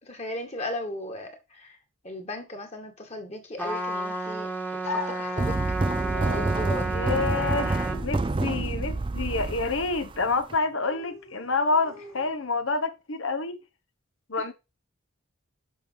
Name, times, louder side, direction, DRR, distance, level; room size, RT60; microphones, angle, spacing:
voice 1, 0.0-1.8 2.0-4.5 4.8-5.6 5.9-6.9, left 1 dB, 30° left, 2.1 m, -36 dB
Trumpet, 3.6-8.0, right 2 dB, 10° left, 1.4 m, -31 dB
sound 1, 4.8-12.8, left 3 dB, 80° left, 3.0 m, -42 dB
sound 2, 5.4-10.6, right 2 dB, 25° right, 0.4 m, -28 dB
voice 2, 6.8-13.6 14.3-14.5, left 3 dB, 65° left, 1.2 m, -28 dB
10.0 x 5.8 x 4.8 m
head